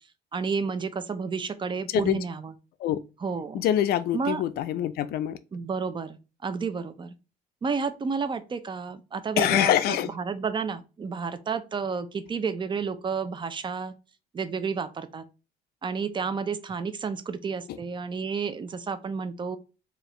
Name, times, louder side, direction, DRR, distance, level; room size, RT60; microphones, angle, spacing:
voice 1, 0.3-2.5 3.2-3.6 4.1-4.4 5.5-7.1 7.6-13.9 14.3-15.2 15.8-19.6, right 5 dB, 30° right, 0.6 m, -31 dB
voice 2, 1.9-2.2 2.8-3.0 3.5-5.4 9.4-10.1, left 11 dB, 70° left, 0.4 m, -25 dB
4.7 x 2.5 x 3.1 m
cardioid pair, 110°, 17 cm